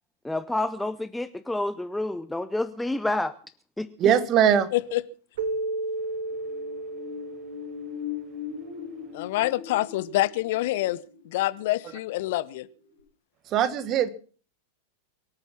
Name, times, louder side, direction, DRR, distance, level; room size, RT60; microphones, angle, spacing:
voice 1, 0.2-3.4 3.8-3.9, left 2 dB, 5° left, 12 dB, 0.7 m, -29 dB
voice 2, 4.0-4.7 13.5-14.1, right 9 dB, 35° right, 13 dB, 1.6 m, -21 dB
voice 3, 4.7-5.0 9.1-11.0 11.2-12.7, left 16 dB, 50° left, 17 dB, 0.8 m, -26 dB
Keyboard (musical), 5.4-8.6, right 2 dB, 55° right, 1.6 m, -33 dB
sound 1, 6.3-12.6 13.0-13.1, left 8 dB, 80° right, 6.4 m, -40 dB
23.5 x 9.0 x 6.0 m, 0.41 s
figure-of-eight pair, 90°, 0 cm